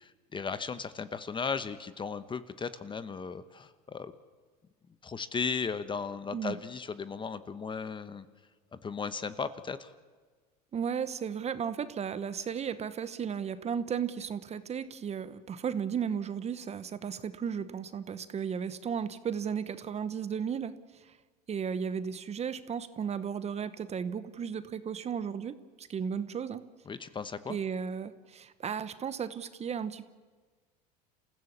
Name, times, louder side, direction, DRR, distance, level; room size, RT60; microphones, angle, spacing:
voice 1, 0.0-4.1 5.0-8.2 8.8-9.9 26.9-27.6, left 5 dB, 25° left, 13 dB, 1.0 m, -36 dB
voice 2, 10.7-21.1 21.5-26.6 27.5-30.0, right 7 dB, 30° right, 13 dB, 1.1 m, -35 dB
27.5 x 15.5 x 7.3 m, 1.4 s
supercardioid pair, 95°, 21 cm